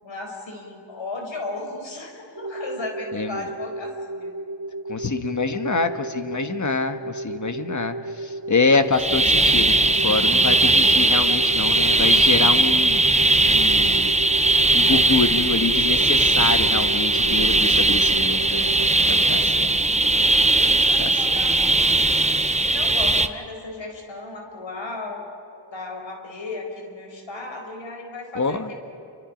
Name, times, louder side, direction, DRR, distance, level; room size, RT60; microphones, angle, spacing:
voice 1, 0.0-4.3 18.3-19.1 19.5-22.2 22.7-25.2 25.7-28.7, left 3 dB, 80° left, 2 dB, 4.8 m, -36 dB
sound 1, 2.4-18.9, right 2 dB, 50° right, 0.8 m, -34 dB
voice 2, 4.9-8.0 8.2-14.1 14.7-18.7 19.1-19.7 21.0-21.1 28.3-28.7, left 4 dB, 40° left, 8 dB, 1.4 m, -25 dB
sound 2, 8.9-23.3, right 2 dB, 15° right, 0.8 m, -19 dB
28.5 x 25.0 x 5.2 m, 2.8 s
wide cardioid pair, 105°, 45 cm